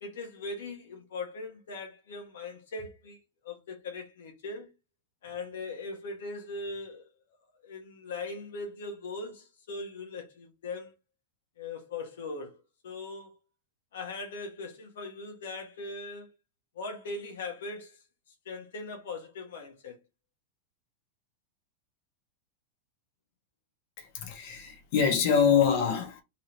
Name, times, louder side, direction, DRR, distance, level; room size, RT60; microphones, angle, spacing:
voice 1, 0.0-4.7 5.2-7.1 7.6-10.9 11.6-13.3 13.9-16.3 16.7-18.0 18.4-20.0, left 3 dB, 90° left, 1.5 m, -40 dB
voice 2, 24.0-26.2, left 7 dB, 50° left, 1.4 m, -25 dB
3.8 x 3.2 x 2.9 m
supercardioid pair, 150°, 0 cm